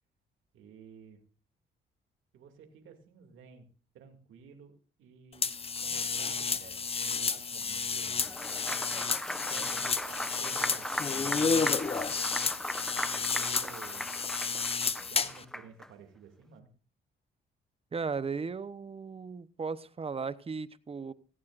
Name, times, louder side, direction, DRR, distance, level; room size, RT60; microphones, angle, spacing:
voice 1, 0.5-1.2 2.3-3.6 3.9-5.5 5.8-8.8 9.3-11.8 13.1-14.1 15.1-16.7, right 7 dB, 85° right, 4 dB, 2.5 m, -53 dB
sound 1, 5.4-15.4, left 5 dB, 30° left, 0.9 m, -31 dB
Applause, 8.1-15.9, equal, ahead, 0.9 m, -38 dB
voice 2, 17.9-21.1, right 5 dB, 30° right, 15 dB, 0.9 m, -36 dB
17.0 x 16.0 x 2.5 m, 0.37 s
cardioid pair, 90°, 20 cm